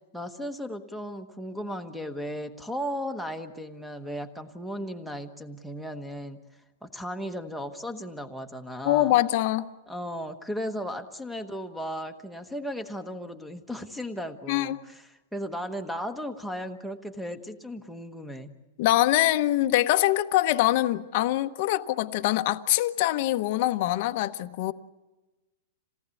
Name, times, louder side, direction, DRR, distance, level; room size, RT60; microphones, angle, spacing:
voice 1, 0.1-6.4 6.8-9.1 9.9-18.5, equal, ahead, 1.2 m, -36 dB
voice 2, 8.9-9.7 14.5-14.8 18.8-24.7, left 15 dB, 40° left, 0.9 m, -24 dB
28.0 x 18.0 x 8.4 m
supercardioid pair, 175°, 0 cm